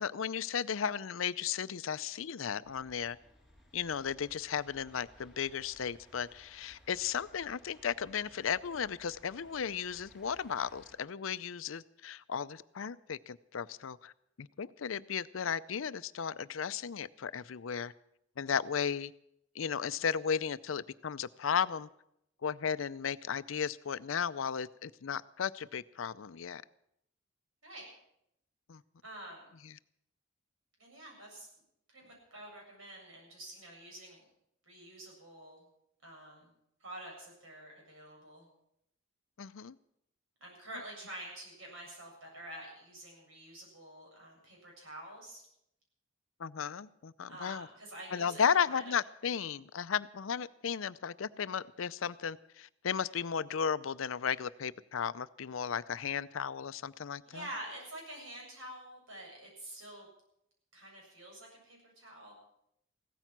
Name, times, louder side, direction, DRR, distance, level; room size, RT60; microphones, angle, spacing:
voice 1, 0.0-3.2 3.7-14.1 14.4-17.9 18.4-19.1 19.5-21.9 22.4-26.6 28.7-28.8 39.4-39.8 46.4-47.7 48.1-57.5, left 7 dB, 80° left, 16 dB, 0.5 m, -35 dB
sound 1, 2.6-11.0, equal, 5° right, 3.9 m, -61 dB
voice 2, 29.0-29.5 30.8-31.5 31.9-34.2 34.7-35.6 36.0-36.5 36.8-38.5 40.4-45.4 47.3-48.9 57.2-60.1 60.7-62.3, right 1 dB, 80° right, -1 dB, 7.8 m, -48 dB
16.5 x 13.5 x 6.0 m, 0.77 s
head